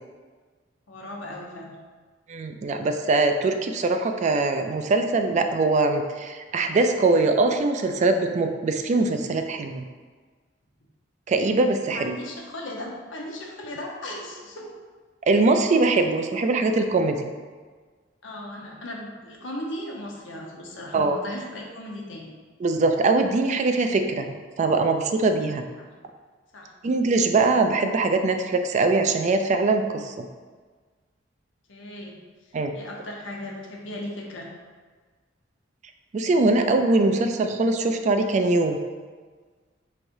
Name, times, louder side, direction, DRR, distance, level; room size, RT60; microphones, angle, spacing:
voice 1, 0.9-1.8 11.9-14.7 18.2-22.3 26.5-26.7 31.7-32.2 32.4-34.5, left 1 dB, 85° left, -1 dB, 0.8 m, -37 dB
voice 2, 2.3-9.8 11.3-12.2 15.2-17.3 20.9-21.2 22.6-25.6 26.8-30.3 32.5-32.8 36.1-38.8, right 3 dB, 40° right, 6 dB, 0.3 m, -22 dB
5.7 x 3.2 x 2.6 m, 1.5 s
head